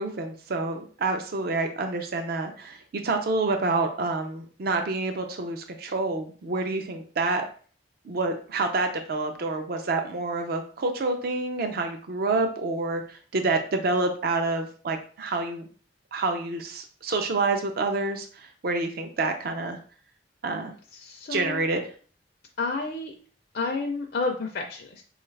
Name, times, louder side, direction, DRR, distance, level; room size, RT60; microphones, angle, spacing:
voice 1, 0.0-7.5 8.0-15.6 16.1-19.8 20.4-20.7 21.3-21.8, right 3 dB, 55° right, 5 dB, 0.4 m, -28 dB
voice 2, 20.9-21.6 22.6-23.1 23.5-25.0, left 3 dB, 55° left, 1 dB, 0.4 m, -30 dB
4.5 x 2.4 x 3.2 m, 0.43 s
head